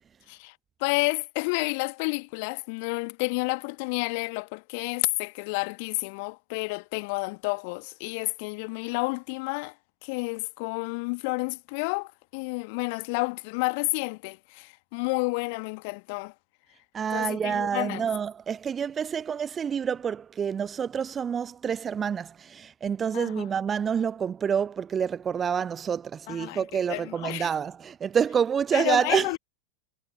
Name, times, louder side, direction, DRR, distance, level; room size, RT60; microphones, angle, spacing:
voice 1, 0.3-9.8 10.0-16.3 17.1-18.1 23.1-23.5 26.3-27.5 28.7-29.4, left 31 dB, 45° left, 1.4 m, -30 dB
voice 2, 16.9-29.3, right 7 dB, 20° right, 0.4 m, -28 dB
figure-of-eight pair, 90°, 0 cm